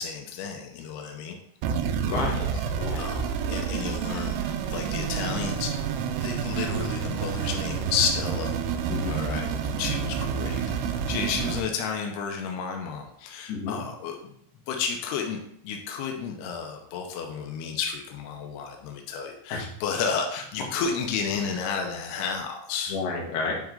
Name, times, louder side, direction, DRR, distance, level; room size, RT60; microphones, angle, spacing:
voice 1, 0.0-1.4 2.9-5.7 6.2-8.5 9.1-9.5 9.8-10.6 10.9-14.3 14.7-23.0, left 6 dB, 80° left, 2 dB, 2.3 m, -32 dB
sound 1, 1.6-11.6, right 7 dB, 85° right, 2.5 m, -29 dB
voice 2, 2.0-3.0 8.9-9.1 11.1-11.2 13.5-13.8 19.5-19.6 22.9-23.6, left 4 dB, 65° left, -1 dB, 3.0 m, -31 dB
10.5 x 3.7 x 3.7 m, 0.73 s
omnidirectional pair, 5.5 m